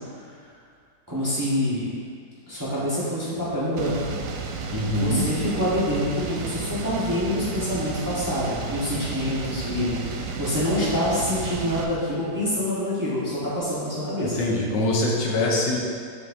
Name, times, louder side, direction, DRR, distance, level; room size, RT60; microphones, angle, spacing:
voice 1, 1.1-1.9 2.5-4.2 4.9-14.4, left 1 dB, 10° right, -10 dB, 1.2 m, -26 dB
sound 1, 3.8-11.8, right 4 dB, 75° right, 0.8 m, -32 dB
voice 2, 4.7-5.3 14.2-15.8, left 1 dB, 80° left, -2 dB, 1.5 m, -24 dB
6.9 x 5.6 x 2.8 m, 2.1 s
omnidirectional pair, 1.9 m